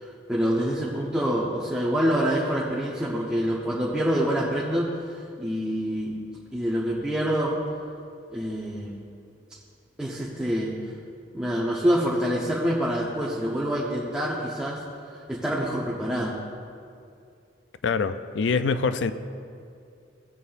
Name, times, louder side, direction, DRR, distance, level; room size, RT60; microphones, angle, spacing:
voice 1, 0.0-4.9 5.4-6.2 6.5-7.6 8.3-9.0 10.0-10.8 11.3-16.4, equal, 5° right, -7 dB, 0.9 m, -26 dB
voice 2, 17.8-19.1, left 5 dB, 80° left, 12 dB, 0.4 m, -24 dB
16.0 x 8.1 x 2.5 m, 2.4 s
head